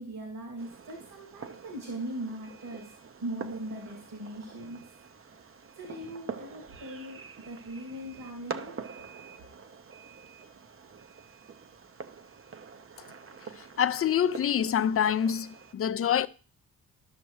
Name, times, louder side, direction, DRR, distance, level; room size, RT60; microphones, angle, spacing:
voice 1, 0.0-2.9 3.2-4.9 5.7-8.8, right 1 dB, 70° right, 2.5 m, -40 dB
Fireworks, 0.6-15.7, right 6 dB, 40° right, 0.7 m, -46 dB
voice 2, 13.8-16.3, left 9 dB, 40° left, 0.5 m, -26 dB
13.0 x 6.0 x 3.2 m
supercardioid pair, 55°, 34 cm